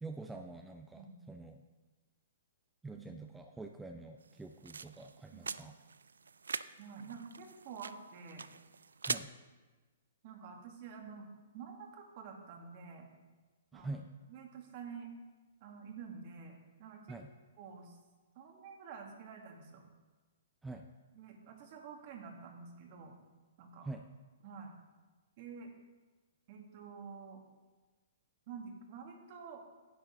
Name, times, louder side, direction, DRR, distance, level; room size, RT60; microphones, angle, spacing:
voice 1, 0.0-1.6 2.8-5.7 9.0-9.3 13.7-14.1 17.1-17.3 20.6-20.9 23.8-24.1, right 3 dB, 10° right, 4 dB, 0.5 m, -46 dB
sound 1, 4.2-9.2, right 5 dB, 85° right, 0.3 m, -43 dB
voice 2, 6.8-8.5 10.2-11.3 11.5-13.1 13.7-13.9 14.3-15.1 15.6-17.2 17.6-18.0 18.4-19.9 21.1-23.2 23.6-23.9 24.4-24.7 25.4-25.7 26.5-27.4 28.5-29.6, right 6 dB, 45° right, 3 dB, 1.8 m, -49 dB
10.5 x 7.9 x 3.7 m, 1.3 s
hypercardioid pair, 130°, 0 cm